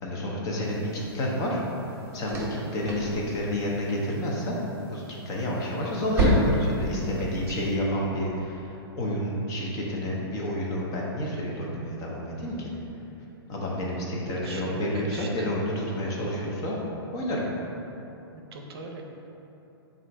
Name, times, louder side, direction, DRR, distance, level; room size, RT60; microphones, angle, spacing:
voice 1, 0.0-1.6 2.1-2.5 2.7-4.6 4.9-12.7 13.5-16.9 17.1-17.5, equal, 25° left, -3 dB, 0.7 m, -30 dB
sound 1, 0.6-7.8, right 1 dB, 15° right, 0.8 m, -31 dB
voice 2, 7.2-7.6 14.3-15.5 18.3-19.0, right 3 dB, 70° right, 2 dB, 0.5 m, -41 dB
3.7 x 2.5 x 4.4 m, 3.0 s
hypercardioid pair, 140°, 13 cm